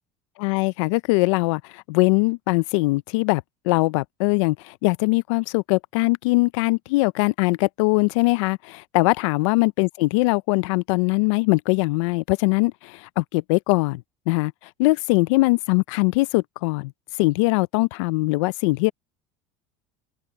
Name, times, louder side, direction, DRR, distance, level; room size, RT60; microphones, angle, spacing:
voice 1, 0.4-14.5 14.8-16.9 17.2-18.9, left 24 dB, 85° left, 0.4 m, -21 dB
open air
supercardioid pair, 130°, 15 cm